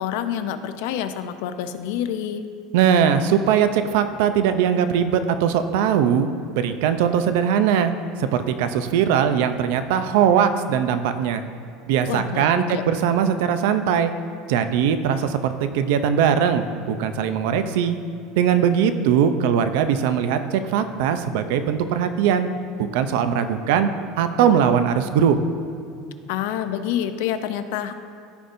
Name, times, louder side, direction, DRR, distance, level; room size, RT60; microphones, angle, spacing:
voice 1, 0.0-2.4 12.1-12.8 26.3-27.9, left 10 dB, 70° left, 9 dB, 0.5 m, -27 dB
voice 2, 2.7-6.3 6.5-7.9 8.2-11.4 11.9-14.1 14.5-18.0 18.4-22.5 22.8-23.9 24.2-25.4, right 8 dB, 70° right, 9 dB, 0.5 m, -20 dB
14.0 x 5.2 x 2.6 m, 2.5 s
cardioid pair, 170°, 0 cm